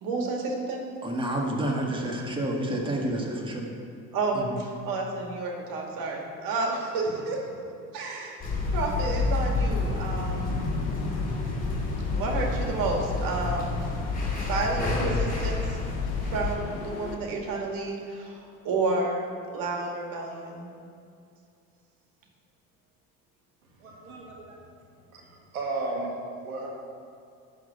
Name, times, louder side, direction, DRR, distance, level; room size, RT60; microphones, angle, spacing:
voice 1, 0.0-0.8 4.1-7.7 7.9-8.4 8.7-10.6 12.1-13.8 14.3-15.8 16.2-18.4 18.6-20.7, right 3 dB, 50° right, 0 dB, 2.2 m, -30 dB
voice 2, 1.0-3.7 4.4-4.6, right 1 dB, 10° right, -1 dB, 1.8 m, -29 dB
sound 1, 8.4-16.6, left 3 dB, 20° left, 2.6 m, -28 dB
sound 2, 9.6-17.2, left 5 dB, 55° left, 1.1 m, -42 dB
voice 3, 23.8-24.6 25.1-26.1 26.4-26.7, right 3 dB, 75° right, -1 dB, 1.4 m, -34 dB
11.5 x 4.0 x 7.6 m, 2.5 s
figure-of-eight pair, 60°, 43 cm